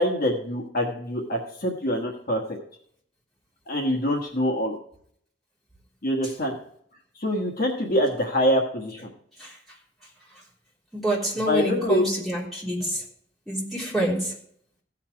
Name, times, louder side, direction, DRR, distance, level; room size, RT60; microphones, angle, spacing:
voice 1, 0.0-2.4 3.7-4.8 6.0-6.5 7.2-9.1 11.5-12.0, equal, 50° left, 0 dB, 1.3 m, -25 dB
voice 2, 10.9-13.0 13.5-14.3, right 1 dB, ahead, -7 dB, 3.3 m, -27 dB
15.5 x 5.7 x 4.6 m, 0.66 s
head